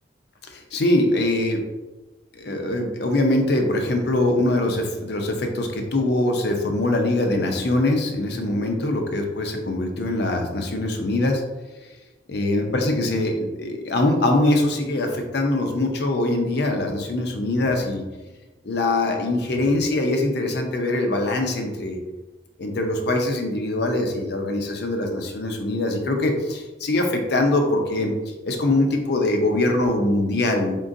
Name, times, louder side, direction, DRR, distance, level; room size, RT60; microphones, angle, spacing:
voice 1, 0.5-1.6 2.3-11.4 12.3-18.0 18.6-22.0 22.6-28.1 28.4-30.8, left 2 dB, 60° left, 3 dB, 0.6 m, -23 dB
3.7 x 3.7 x 2.6 m, 1.1 s
head